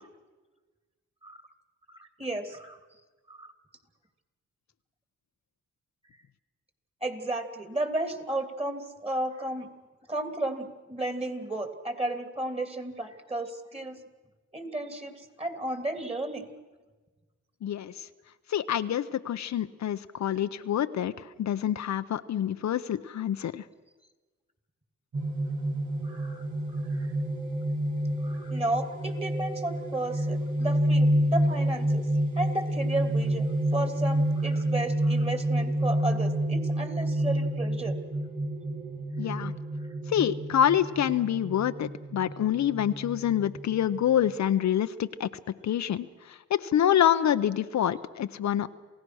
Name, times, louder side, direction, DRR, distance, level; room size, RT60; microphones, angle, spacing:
voice 1, 1.9-2.8 3.3-3.5 7.0-9.7 10.1-14.0 14.5-16.4 26.0-26.4 26.9-27.1 28.2-32.0 32.3-38.0, right 1 dB, 20° right, 7 dB, 3.1 m, -33 dB
voice 2, 17.6-18.1 18.5-23.6 39.2-39.5 40.1-45.3 45.6-48.7, left 10 dB, 70° left, 11 dB, 0.7 m, -27 dB
sound 1, 25.1-44.3, right 1 dB, 80° right, 5.9 m, -29 dB
28.0 x 16.5 x 6.3 m, 1.3 s
cardioid pair, 65°, 30 cm